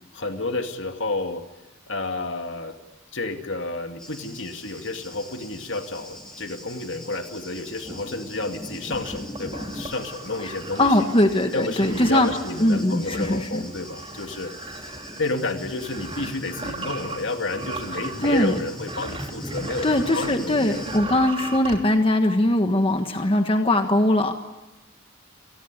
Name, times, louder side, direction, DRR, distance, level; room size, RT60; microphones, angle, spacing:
voice 1, 0.1-1.4 1.9-2.8 3.1-11.1 11.5-14.5 15.2-21.0, left 2 dB, 65° left, 5 dB, 2.6 m, -30 dB
Thunder, 4.0-21.0, left 1 dB, 5° left, 7.4 m, -40 dB
sound 1, 8.9-20.4 20.7-21.8, right 3 dB, 30° right, 3.1 m, -38 dB
voice 2, 10.8-12.3 12.6-13.6 18.2-18.5 19.8-24.3, left 1 dB, 25° left, 6 dB, 1.5 m, -21 dB
29.0 x 20.0 x 9.9 m, 1.0 s
head